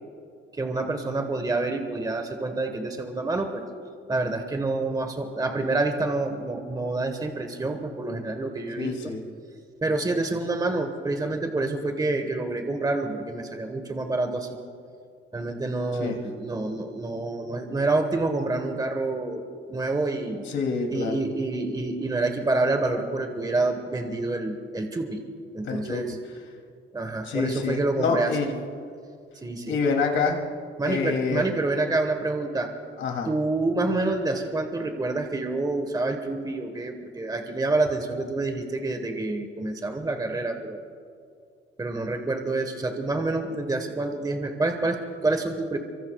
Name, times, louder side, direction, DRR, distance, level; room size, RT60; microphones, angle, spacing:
voice 1, 0.5-3.6 4.1-9.1 9.8-14.5 15.3-20.4 20.9-25.2 25.5-26.2 26.9-28.5 29.4-29.8 30.8-32.7 33.2-40.8 41.8-45.8, right 2 dB, 20° right, 5 dB, 1.4 m, -27 dB
voice 2, 8.8-9.2 16.0-16.2 20.5-21.1 25.7-26.0 27.2-28.5 29.7-30.4 30.8-31.4 33.0-33.3, left 5 dB, 75° left, 1 dB, 2.9 m, -27 dB
24.5 x 24.0 x 2.4 m, 2.3 s
cardioid pair, 90°, 20 cm